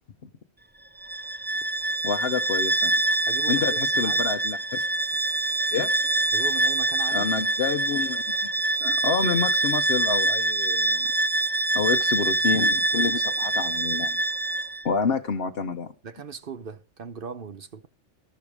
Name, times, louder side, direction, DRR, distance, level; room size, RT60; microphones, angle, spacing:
Bowed string instrument, 1.0-14.8, right 2 dB, 15° right, 0.4 m, -25 dB
voice 1, 2.0-2.9 3.5-4.9 5.7-5.9 7.1-8.2 8.8-11.1 11.7-14.2 14.8-15.9, left 5 dB, 60° left, 1.1 m, -28 dB
voice 2, 3.3-4.3 6.3-7.4 15.1-15.2 16.0-17.9, right 6 dB, 50° right, 1.0 m, -38 dB
13.0 x 12.0 x 4.7 m
omnidirectional pair, 1.2 m